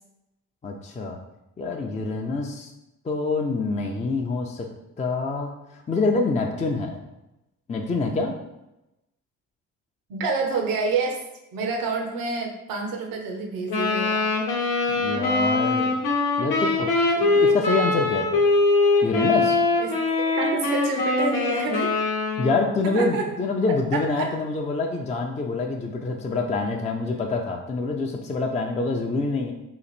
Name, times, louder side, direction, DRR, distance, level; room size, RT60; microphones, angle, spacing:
voice 1, 0.6-1.2 1.6-2.7 3.0-4.7 5.0-7.0 7.7-8.3 14.9-16.0 16.4-16.9 17.3-18.5 19.0-19.6 22.4-29.5, left 3 dB, 20° left, 1 dB, 0.5 m, -26 dB
voice 2, 10.1-11.2 11.5-14.3 17.2-17.3 19.8-19.9 20.3-22.0 22.8-23.2 23.9-24.3, right 3 dB, 70° right, 2 dB, 0.8 m, -28 dB
Wind instrument woodwind instrument, 13.7-22.7, left 3 dB, 85° left, 0.8 m, -22 dB
3.0 x 2.5 x 4.1 m, 0.94 s
hypercardioid pair, 50°, 36 cm